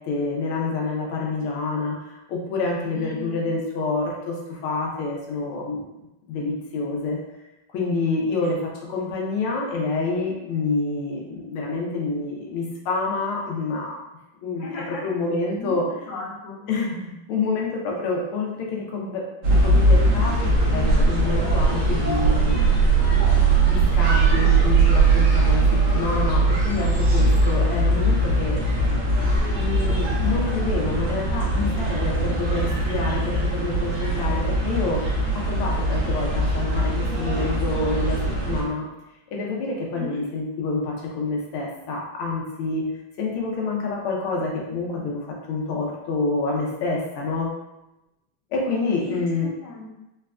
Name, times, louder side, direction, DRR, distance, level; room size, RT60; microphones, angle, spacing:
voice 1, 0.1-1.9 2.3-4.3 4.6-5.8 6.3-7.2 7.7-8.6 8.9-13.9 14.4-15.9 16.7-19.2 19.6-20.3 20.7-22.6 23.7-25.6 25.9-28.6 29.5-35.0 35.5-36.9 37.2-38.2 38.5-38.8 39.3-42.8 43.2-45.1 45.5-47.5 48.5-49.5, left 3 dB, 85° left, -2 dB, 1.5 m, -27 dB
voice 2, 2.9-3.5 8.4-8.5 14.6-15.1 15.6-16.7 39.9-40.2 49.0-49.9, left 2 dB, 60° left, -6 dB, 1.3 m, -37 dB
sound 1, 19.4-38.6, right 2 dB, 60° right, 1.3 m, -20 dB
4.1 x 2.2 x 2.3 m, 0.94 s
omnidirectional pair, 2.3 m